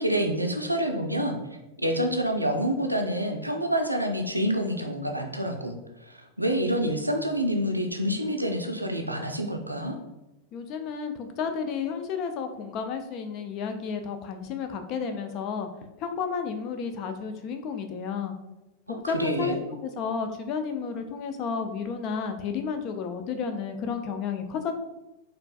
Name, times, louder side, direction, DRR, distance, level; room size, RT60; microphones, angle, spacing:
voice 1, 0.0-1.4 1.8-5.8 6.1-9.9 18.9-19.6, equal, 85° right, 4 dB, 0.4 m, -27 dB
voice 2, 10.5-15.7 16.0-18.3 18.9-24.8, left 6 dB, 40° left, 6 dB, 0.4 m, -32 dB
4.4 x 2.5 x 2.3 m, 1.0 s
figure-of-eight pair, 90°, 0 cm